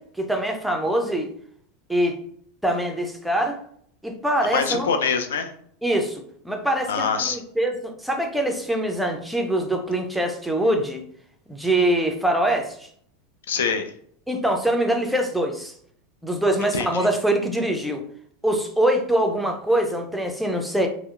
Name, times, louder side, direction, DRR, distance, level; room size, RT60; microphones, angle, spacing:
voice 1, 0.0-1.3 1.9-2.2 2.6-3.6 4.0-4.9 5.8-11.0 11.5-12.9 14.3-15.7 16.2-18.0 18.4-20.9, right 1 dB, ahead, 3 dB, 0.4 m, -23 dB
voice 2, 4.5-5.5 6.9-7.4 13.5-13.8 16.7-17.1, left 6 dB, 85° left, 7 dB, 0.4 m, -24 dB
2.7 x 2.0 x 2.4 m, 0.63 s
hypercardioid pair, 110°, 0 cm